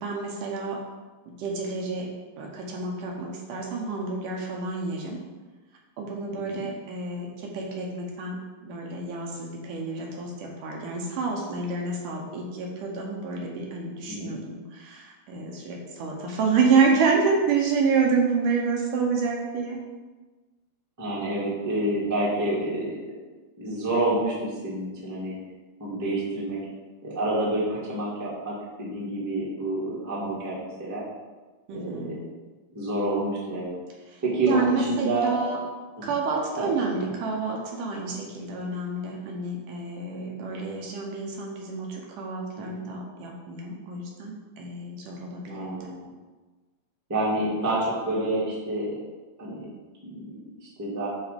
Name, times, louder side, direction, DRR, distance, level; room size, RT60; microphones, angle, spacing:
voice 1, 0.0-0.8 1.4-2.1 2.4-5.2 6.0-19.8 31.7-32.2 34.1-34.2 34.5-35.6 36.0-45.9, right 4 dB, 70° right, -1 dB, 2.3 m, -28 dB
voice 2, 6.3-6.6 14.1-14.3 21.0-23.2 23.6-25.3 25.8-26.6 27.0-31.0 31.7-32.2 32.7-33.7 34.2-35.3 36.0-36.1 36.6-36.7 37.0-37.1 42.8-42.9 45.5-46.1 47.1-48.9 49.4-49.6 50.0-50.3 50.6-51.1, right 1 dB, 10° right, -7 dB, 1.1 m, -28 dB
10.0 x 3.5 x 5.1 m, 1.3 s
omnidirectional pair, 4.1 m